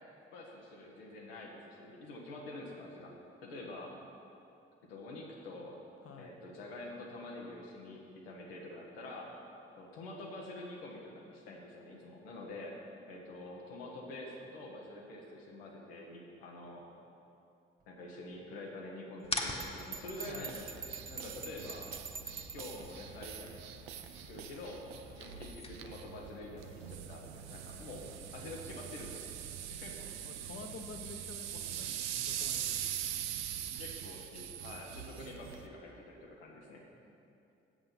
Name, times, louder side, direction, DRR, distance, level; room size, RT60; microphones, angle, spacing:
voice 1, 0.3-3.1 3.4-4.0 4.9-5.8 6.2-9.4 9.8-12.8 13.1-16.8 17.9-20.6 21.1-21.9 22.5-23.6 24.3-24.8 25.2-28.1 28.3-30.1 33.8-36.8, left 2 dB, 85° left, -1 dB, 1.3 m, -47 dB
voice 2, 6.0-6.4 20.3-20.6 29.4-29.5 30.2-32.9, left 4 dB, 50° left, 5 dB, 1.1 m, -49 dB
sound 1, 19.2-26.2, left 2 dB, 20° left, 1.2 m, -45 dB
Bell, 19.6-22.8, right 5 dB, 30° right, 0.6 m, -45 dB
sound 2, 20.1-35.7, right 10 dB, 85° right, 0.5 m, -43 dB
7.8 x 7.8 x 5.8 m, 2.7 s
hypercardioid pair, 40°, 30 cm